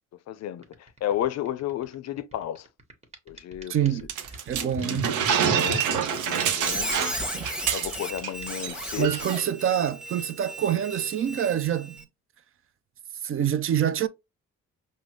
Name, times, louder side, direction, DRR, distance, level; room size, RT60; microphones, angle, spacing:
voice 1, 0.3-2.7 3.3-3.9 4.6-7.1 7.7-9.2, left 11 dB, 60° left, 0.5 m, -33 dB
sound 1, 0.6-9.2, equal, 20° right, 1.2 m, -38 dB
voice 2, 3.7-4.1 4.5-5.1 7.3-7.5 9.0-12.0 13.2-14.1, right 10 dB, 45° right, 0.4 m, -26 dB
sound 2, 4.1-8.3 8.6-8.7 9.0-9.4, right 8 dB, 85° right, 0.7 m, -27 dB
Squeak, 6.1-12.0, equal, 5° right, 0.9 m, -36 dB
5.2 x 2.1 x 3.1 m
cardioid pair, 90°, 30 cm